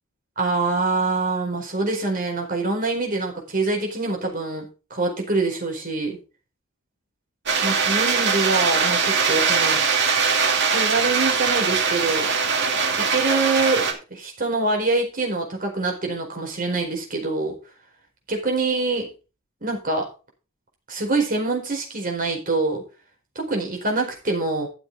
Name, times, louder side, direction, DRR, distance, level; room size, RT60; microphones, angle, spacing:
voice 1, 0.4-4.6 4.9-6.2 7.6-9.8 10.7-12.3 13.1-17.6 18.3-19.1 19.6-20.0 20.9-22.8 23.3-24.7, right 3 dB, 45° right, 1 dB, 4.5 m, -25 dB
sound 1, 7.5-13.9, right 5 dB, 60° right, 2.3 m, -21 dB
13.0 x 7.2 x 4.0 m, 0.32 s
head